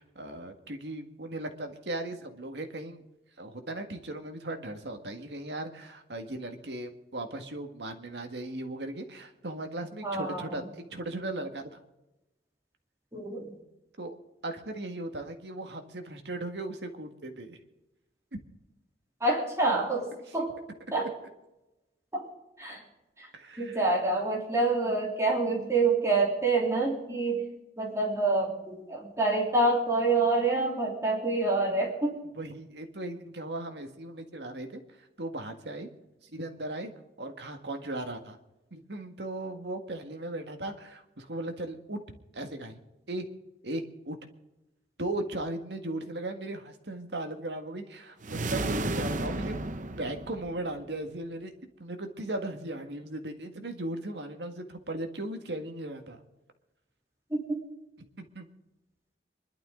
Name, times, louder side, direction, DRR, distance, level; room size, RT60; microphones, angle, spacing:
voice 1, 0.0-3.0 3.4-11.8 14.0-14.1 14.4-17.6 20.3-20.4 21.0-21.1 23.3-23.8 32.3-35.9 36.2-36.9 37.2-38.4 38.7-42.0 42.3-42.8 43.1-43.3 43.6-44.2 45.0-49.6 50.0-51.5 51.8-56.2 58.2-58.5, right 1 dB, 75° right, 5 dB, 1.8 m, -37 dB
voice 2, 10.0-10.7 13.1-13.5 19.2-20.6 20.9-21.1 22.1-22.3 22.6-22.8 23.2-23.3 23.6-27.4 27.8-32.2 57.3-57.6, right 3 dB, 15° right, -3 dB, 3.4 m, -27 dB
sound 1, 48.2-50.8, right 2 dB, 45° right, 0.8 m, -32 dB
25.5 x 12.0 x 3.9 m, 0.98 s
head